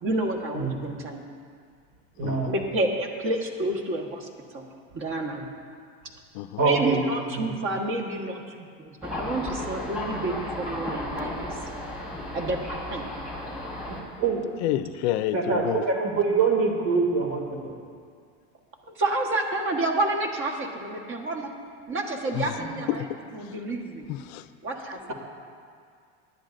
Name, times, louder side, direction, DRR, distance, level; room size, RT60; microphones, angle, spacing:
voice 1, 0.0-1.2 2.5-4.3 4.5-4.6 4.9-5.5 6.6-11.5 12.3-13.1 18.9-21.5 21.9-23.0 23.3-24.1 24.6-25.1, right 2 dB, 35° right, 3 dB, 1.4 m, -29 dB
voice 2, 2.2-2.5 6.6-7.0 7.3-7.5 13.9-14.4 15.3-17.7 22.6-22.8, right 4 dB, 55° right, 0 dB, 2.5 m, -25 dB
Thunder, 9.0-14.0, left 1 dB, 5° right, 1.9 m, -34 dB
voice 3, 14.6-15.8 22.3-22.6 22.9-23.1 23.3-23.6 24.1-24.5, left 13 dB, 65° left, 13 dB, 0.6 m, -29 dB
18.5 x 11.0 x 2.6 m, 2.1 s
supercardioid pair, 140°, 35 cm